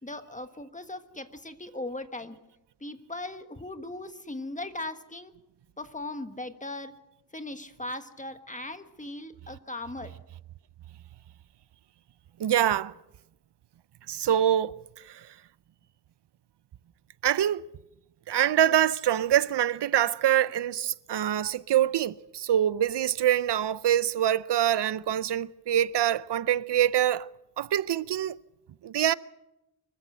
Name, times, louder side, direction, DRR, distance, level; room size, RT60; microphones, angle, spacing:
voice 1, 0.0-2.4 2.8-5.3 5.8-6.9 7.3-10.1, left 2 dB, 20° left, 1.4 m, -38 dB
voice 2, 12.4-12.9 14.1-14.7 15.0-15.3 17.2-17.7 18.3-27.3 27.6-28.4 28.8-29.1, right 11 dB, 90° right, 0.6 m, -25 dB
24.5 x 14.5 x 7.8 m
wide cardioid pair, 110°, 40 cm